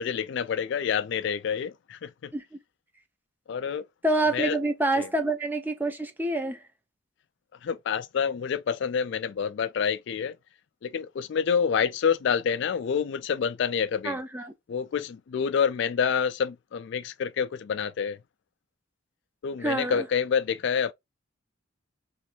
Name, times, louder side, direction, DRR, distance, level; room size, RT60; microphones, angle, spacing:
voice 1, 0.0-2.3 3.5-3.9 4.3-4.6 5.0-5.1 7.6-10.4 10.8-14.2 14.7-18.2 19.4-20.9, left 7 dB, 55° left, 0.3 m, -27 dB
voice 2, 4.0-6.6 14.0-14.5 19.6-20.1, right 2 dB, 10° right, 0.5 m, -27 dB
3.1 x 2.6 x 4.3 m
head